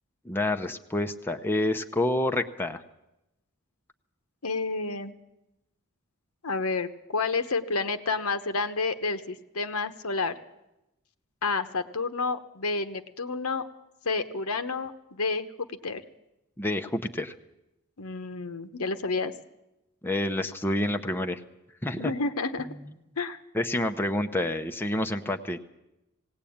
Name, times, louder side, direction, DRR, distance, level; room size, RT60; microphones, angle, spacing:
voice 1, 0.2-2.8 16.6-17.3 20.0-21.4 21.8-22.1 22.7-22.8 23.5-25.6, left 1 dB, 10° left, 5 dB, 0.8 m, -28 dB
voice 2, 4.4-5.1 6.4-10.3 11.4-13.6 14.0-15.5 15.8-16.0 18.0-19.3 22.0-22.7 23.2-23.4, left 4 dB, 70° left, 9 dB, 1.1 m, -30 dB
18.5 x 18.0 x 8.7 m, 0.93 s
head